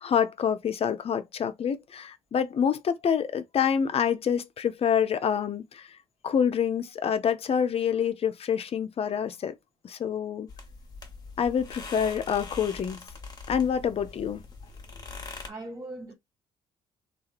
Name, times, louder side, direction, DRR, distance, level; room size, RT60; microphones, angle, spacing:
voice 1, 0.0-5.9 6.2-9.5 9.8-10.5 11.4-13.0 13.5-14.4, left 8 dB, 45° left, 0.5 m, -27 dB
sound 1, 10.5-15.5, left 4 dB, 25° left, 0.9 m, -42 dB
voice 2, 15.5-16.2, right 2 dB, 25° right, 0.8 m, -40 dB
2.7 x 2.4 x 2.4 m
hypercardioid pair, 60°, 14 cm